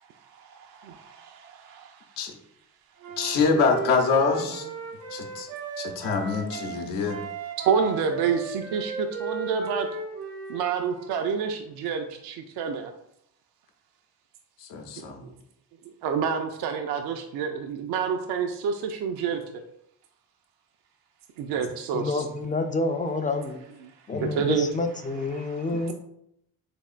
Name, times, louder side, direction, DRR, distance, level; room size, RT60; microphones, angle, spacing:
voice 1, 0.2-2.1 7.6-9.9 10.5-12.9 16.0-19.4 21.4-22.2 24.2-24.7 25.3-25.7, right 6 dB, 60° right, 5 dB, 0.5 m, -28 dB
Wind instrument woodwind instrument, 3.0-6.8 7.1-11.2, right 3 dB, 90° right, 0.8 m, -36 dB
voice 2, 3.2-4.7 5.1-5.5 5.8-7.2 14.6-15.2 21.5-21.7 24.1-24.2 25.7-25.9, left 4 dB, 80° left, 2 dB, 0.7 m, -25 dB
voice 3, 21.9-23.6 24.1-25.9, left 3 dB, 20° left, 7 dB, 0.3 m, -28 dB
3.6 x 3.4 x 2.4 m, 0.77 s
hypercardioid pair, 55°, 43 cm